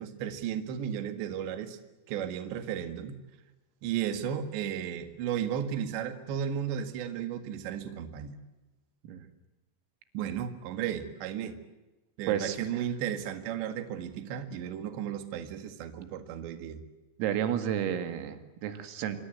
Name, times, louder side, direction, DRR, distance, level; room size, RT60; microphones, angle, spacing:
voice 1, 0.0-1.8 2.1-3.2 3.8-8.4 10.1-11.6 12.2-16.8, right 9 dB, 65° right, 8 dB, 3.8 m, -34 dB
voice 2, 12.3-12.8 17.2-19.2, right 10 dB, 90° right, 8 dB, 4.7 m, -31 dB
27.0 x 24.0 x 7.8 m, 1.1 s
omnidirectional pair, 5.9 m